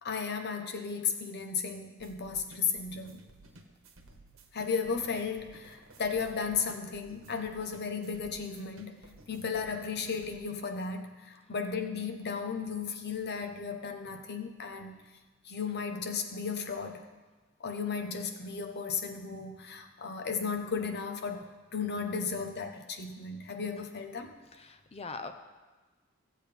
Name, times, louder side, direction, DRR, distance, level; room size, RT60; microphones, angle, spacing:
voice 1, 0.0-3.2 4.5-14.9 15.4-17.1 17.6-21.4 21.7-24.3, left 5 dB, 55° left, 5 dB, 0.9 m, -35 dB
sound 1, 2.0-10.3, right 2 dB, 75° right, 1.1 m, -56 dB
voice 2, 24.5-25.3, left 4 dB, 30° left, 8 dB, 0.6 m, -42 dB
16.0 x 7.7 x 3.4 m, 1.3 s
head